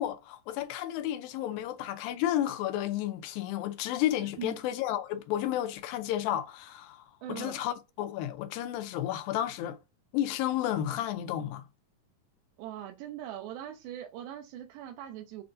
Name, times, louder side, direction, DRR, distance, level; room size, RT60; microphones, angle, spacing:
voice 1, 0.0-9.8 10.1-11.7, left 12 dB, 85° left, 2.3 m, -32 dB
voice 2, 7.2-7.6 12.6-15.4, right 11 dB, 90° right, 2.4 m, -41 dB
6.8 x 2.5 x 2.5 m
omnidirectional pair, 4.1 m